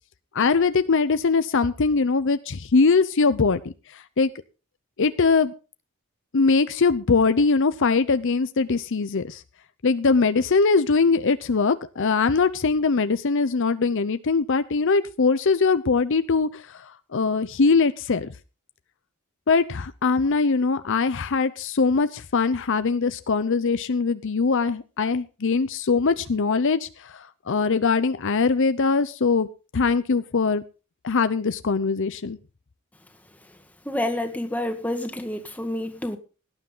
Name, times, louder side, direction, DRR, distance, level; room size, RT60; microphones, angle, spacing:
voice 1, 0.3-3.7 4.2-4.3 5.0-5.5 6.3-9.4 9.8-16.6 17.1-18.3 19.5-29.5 29.7-30.6 31.0-32.4, left 4 dB, 60° left, 0.7 m, -21 dB
voice 2, 33.8-36.2, left 1 dB, 5° left, 1.8 m, -28 dB
17.5 x 10.0 x 3.8 m
head